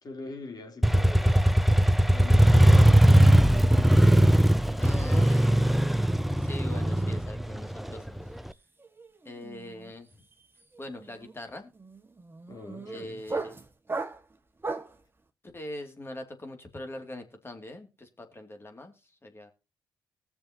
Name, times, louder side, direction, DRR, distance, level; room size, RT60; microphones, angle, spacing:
voice 1, 0.0-1.4 2.1-5.5 12.5-13.2, left 3 dB, 50° left, 3.4 m, -43 dB
Motorcycle, 0.8-8.5, right 1 dB, ahead, 0.7 m, -20 dB
voice 2, 4.8-8.2 9.2-10.2 10.8-11.7 12.8-13.6 15.5-18.9 19.2-19.5, left 1 dB, 25° left, 2.6 m, -42 dB
sound 1, 8.2-8.5 8.8-15.0, right 3 dB, 25° right, 1.7 m, -38 dB
20.0 x 7.0 x 2.9 m
supercardioid pair, 50°, 9 cm